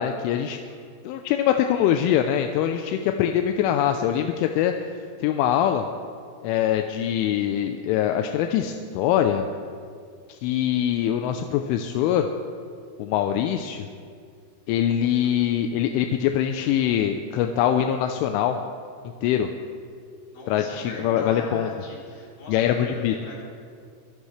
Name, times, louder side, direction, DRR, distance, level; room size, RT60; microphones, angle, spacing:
voice 1, 0.0-0.6 1.1-4.7 5.2-5.8 6.4-9.4 10.3-12.3 13.0-13.9 14.7-18.6 19.2-19.5 20.5-21.7 22.5-23.1, left 10 dB, 85° left, 5 dB, 3.0 m, -23 dB
voice 2, 20.3-23.4, left 2 dB, 55° left, -4 dB, 5.3 m, -41 dB
25.0 x 16.5 x 3.3 m, 2.1 s
omnidirectional pair, 5.9 m